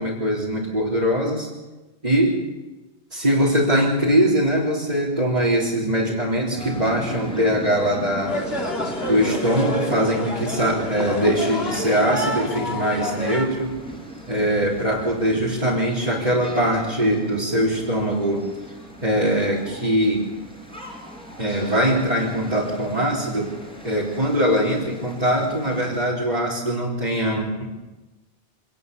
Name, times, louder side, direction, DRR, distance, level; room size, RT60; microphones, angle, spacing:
voice 1, 0.0-1.5 2.0-2.4 3.1-8.4 9.1-13.7 14.3-18.4 19.0-20.2 21.4-23.5 23.8-27.7, equal, 35° right, -6 dB, 4.0 m, -22 dB
sound 1, 6.5-26.1, equal, 5° left, 6.4 m, -39 dB
sound 2, 8.3-13.4, left 1 dB, 60° left, 3.0 m, -28 dB
26.0 x 19.0 x 6.9 m, 1.1 s
omnidirectional pair, 1.2 m